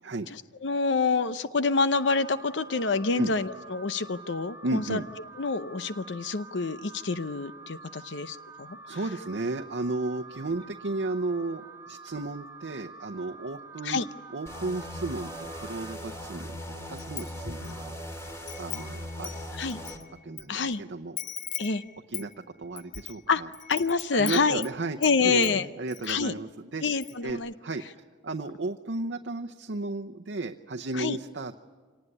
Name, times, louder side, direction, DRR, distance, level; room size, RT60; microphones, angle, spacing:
voice 1, 0.3-5.0 5.4-9.0 13.8-14.1 19.5-19.8 20.5-20.8 21.6-21.8 23.3-23.4 23.7-24.6 25.0-25.7 26.1-26.3 26.8-27.5 30.9-31.2, left 4 dB, 80° left, 12 dB, 0.7 m, -27 dB
Alarm, 1.9-16.0, right 3 dB, 15° right, 0.7 m, -47 dB
voice 2, 4.6-5.0 8.9-14.0 14.3-17.9 18.6-19.4 20.2-21.2 22.1-23.5 24.1-25.0 25.2-26.8 27.2-27.8 28.2-31.6, right 2 dB, 80° right, 4 dB, 0.8 m, -34 dB
sound 1, 14.5-20.0, equal, 15° left, 2.5 m, -39 dB
Wind chime, 17.0-17.8 18.2-20.4 20.7-20.8 21.2-25.2 25.4-26.2 26.5-26.6 26.9-27.3, left 11 dB, 45° left, 0.7 m, -40 dB
26.0 x 19.0 x 9.9 m, 1.5 s
head